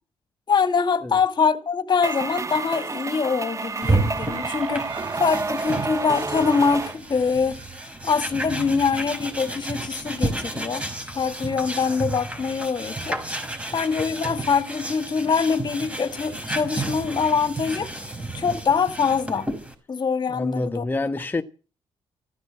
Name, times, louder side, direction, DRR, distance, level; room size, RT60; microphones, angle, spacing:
voice 1, 0.5-7.6 8.0-10.8 11.1-13.2 13.7-17.9 18.3-19.5 19.9-20.9, left 5 dB, 45° left, 2.0 m, -24 dB
sound 1, 2.0-7.0, right 3 dB, 30° right, 1.3 m, -30 dB
sound 2, 3.6-8.4, right 8 dB, 80° right, 4.4 m, -44 dB
sound 3, 3.8-19.7, right 2 dB, 10° right, 5.2 m, -31 dB
voice 2, 20.3-21.4, left 2 dB, 20° left, 1.3 m, -27 dB
15.0 x 12.0 x 7.6 m
cardioid pair, 75°, 11 cm